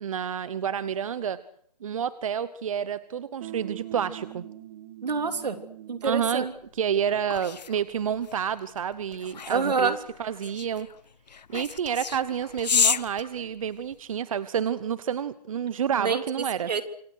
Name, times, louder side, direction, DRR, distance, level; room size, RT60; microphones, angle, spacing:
voice 1, 0.0-1.4 1.8-4.4 6.0-6.5 6.7-10.9 11.5-16.7, right 8 dB, 55° right, 16 dB, 1.0 m, -29 dB
sound 1, 3.4-6.6, right 13 dB, 35° right, 2.2 m, -42 dB
voice 2, 5.0-5.6 5.9-6.5 9.5-10.0 16.0-16.2 16.7-16.8, right 5 dB, 80° right, 9 dB, 3.2 m, -26 dB
sound 2, 6.6-14.1, left 6 dB, 85° left, 1.1 m, -31 dB
27.0 x 24.5 x 6.4 m, 0.67 s
hypercardioid pair, 160°, 21 cm